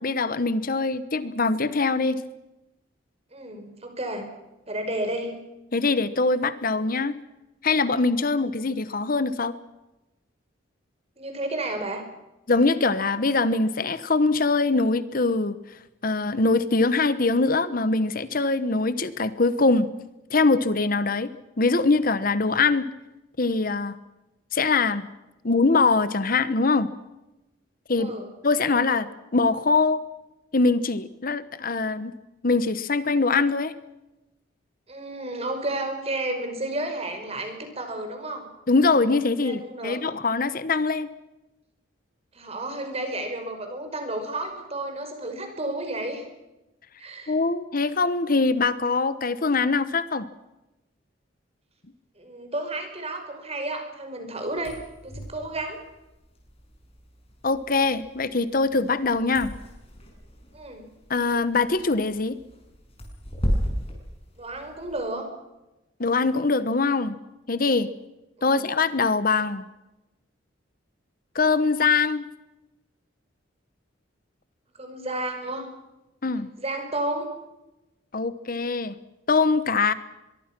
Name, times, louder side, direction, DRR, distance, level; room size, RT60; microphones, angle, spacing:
voice 1, 0.0-2.2 5.7-7.1 7.6-9.5 12.5-15.6 16.0-19.9 20.3-21.3 21.6-22.9 23.4-23.9 24.5-25.0 25.4-26.9 27.9-28.1 28.4-29.1 29.3-30.0 30.5-32.1 32.4-33.7 38.7-41.1 47.3-50.2 57.4-59.5 61.1-62.4 66.0-67.2 67.5-67.9 68.4-69.6 71.3-72.3 76.2-76.5 78.1-78.9 79.3-79.9, left 3 dB, 50° left, 14 dB, 1.0 m, -23 dB
voice 2, 3.3-4.2 4.7-5.4 11.2-12.0 28.0-28.3 34.9-38.5 39.4-40.0 42.3-46.2 47.0-47.4 52.2-55.8 60.5-60.8 64.4-65.3 68.4-68.7 74.8-75.7 76.6-77.3, right 1 dB, 35° right, 6 dB, 5.3 m, -32 dB
sound 1, 54.5-65.0, equal, 30° left, 6.6 m, -35 dB
24.0 x 23.0 x 6.1 m, 0.97 s
head